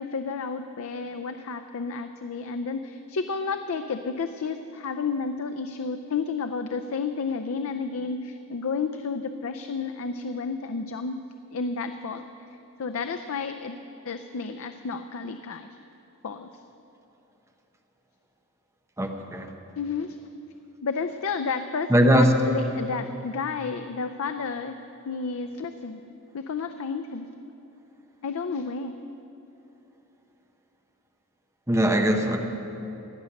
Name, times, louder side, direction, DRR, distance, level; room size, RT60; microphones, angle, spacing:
voice 1, 0.0-11.2 11.5-12.3 12.8-13.8 14.1-15.7 16.2-16.5 19.8-20.2 20.8-24.8 25.1-26.0 26.3-27.3 28.2-28.9, left 4 dB, 65° left, 9 dB, 0.5 m, -31 dB
voice 2, 19.0-19.5 21.9-22.3 31.7-32.4, equal, 15° right, 4 dB, 0.9 m, -20 dB
16.5 x 6.5 x 9.8 m, 3.0 s
head